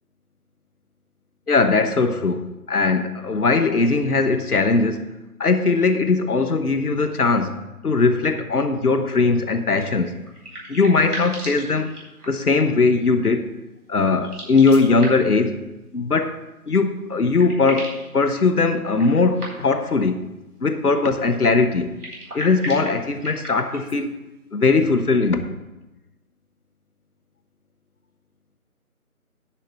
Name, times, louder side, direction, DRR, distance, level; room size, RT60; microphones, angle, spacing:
voice 1, 1.5-5.1 5.4-7.6 7.8-10.2 10.7-11.9 12.3-13.5 13.9-15.6 15.9-20.3 20.6-21.9 22.3-24.2 24.5-25.5, left 4 dB, 80° left, 1.2 m, -20 dB
sound 1, 10.0-12.5 14.1-15.4 16.8-16.9 17.1-18.1 18.9-19.9 21.8-24.0, right 1 dB, 80° right, 4.0 m, -36 dB
10.5 x 4.8 x 7.4 m
figure-of-eight pair, 160°, 44 cm